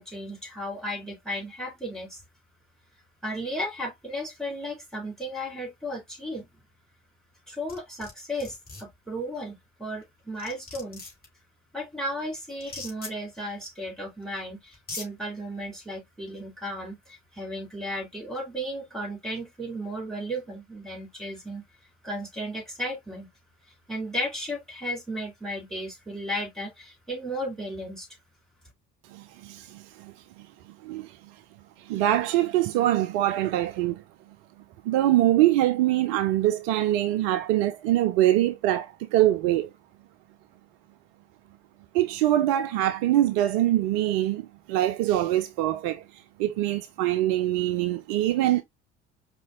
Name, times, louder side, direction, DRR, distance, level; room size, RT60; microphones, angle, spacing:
voice 1, 0.0-2.2 3.2-6.5 7.5-11.0 11.7-21.6 22.0-23.3 23.9-28.1, equal, ahead, 2.1 m, -34 dB
sound 1, 7.7-8.1 8.4-8.8 10.0-10.1 10.4-11.3 12.6-13.1 14.2-14.3 14.7-15.1, left 3 dB, 25° left, 2.5 m, -39 dB
voice 2, 29.1-30.5 30.8-31.2 31.8-34.0 34.8-39.7 41.9-48.6, right 14 dB, 55° right, 0.5 m, -24 dB
4.9 x 2.7 x 2.5 m
figure-of-eight pair, 55°, 33 cm